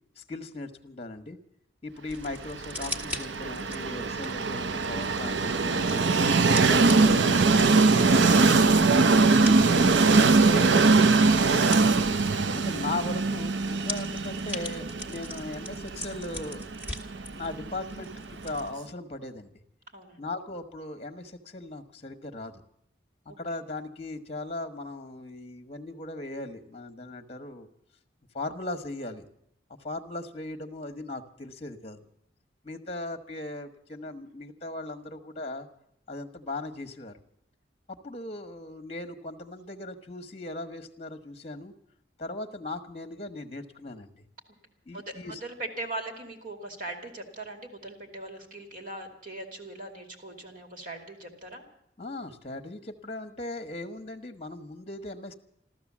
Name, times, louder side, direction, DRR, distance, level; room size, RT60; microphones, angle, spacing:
voice 1, 0.2-1.4 1.8-6.1 6.6-9.0 9.4-10.7 11.1-11.9 12.6-16.6 17.3-19.5 20.2-22.5 23.4-27.7 28.3-29.2 29.8-32.0 32.6-35.7 36.1-37.2 38.0-41.7 42.2-44.1 44.9-45.4 52.0-55.3, left 2 dB, 35° left, 7 dB, 1.2 m, -38 dB
sound 1, 2.1-18.7, left 1 dB, 10° right, 1.4 m, -42 dB
Train, 2.6-18.5, right 3 dB, 80° right, 0.6 m, -22 dB
voice 2, 12.2-12.6 19.9-20.2 23.3-23.4 44.9-51.6, right 2 dB, 45° right, 4 dB, 2.6 m, -40 dB
14.5 x 13.5 x 7.3 m, 0.76 s
head